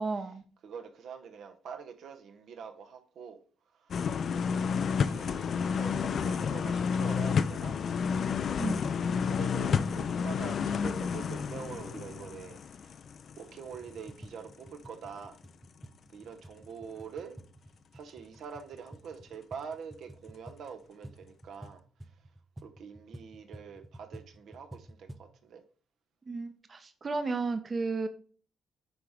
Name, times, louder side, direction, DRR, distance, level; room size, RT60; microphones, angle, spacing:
voice 1, 0.0-0.4 8.6-8.8 26.3-28.1, right 3 dB, 35° right, 8 dB, 0.8 m, -33 dB
voice 2, 0.6-3.4 3.7-4.1 4.3-7.8 9.0-13.0 13.4-15.4 16.1-17.4 17.9-21.8 22.6-25.6, right 6 dB, 70° right, 7 dB, 0.8 m, -45 dB
sound 1, 3.9-13.7 14.1-14.2, left 6 dB, 55° left, 0.4 m, -30 dB
sound 2, 13.7-25.3, right 1 dB, 5° right, 0.5 m, -51 dB
9.3 x 3.6 x 3.5 m, 0.42 s
cardioid pair, 90°, 0 cm